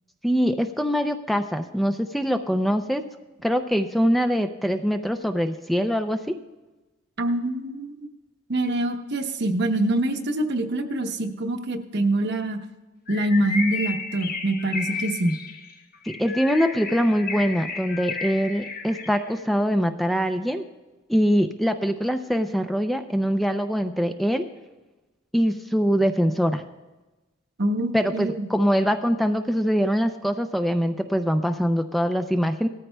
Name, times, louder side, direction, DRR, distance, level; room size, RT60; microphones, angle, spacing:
voice 1, 0.2-3.0 3.4-6.3 16.2-20.6 21.1-24.5 25.3-26.6 27.9-32.7, equal, ahead, 7 dB, 0.4 m, -23 dB
voice 2, 7.2-8.1 8.5-12.6 13.1-15.4 27.6-28.5, right 1 dB, 60° right, 6 dB, 0.9 m, -25 dB
Bird, 13.1-19.4, left 4 dB, 50° left, 1.1 m, -33 dB
18.0 x 13.5 x 2.2 m, 1.1 s
head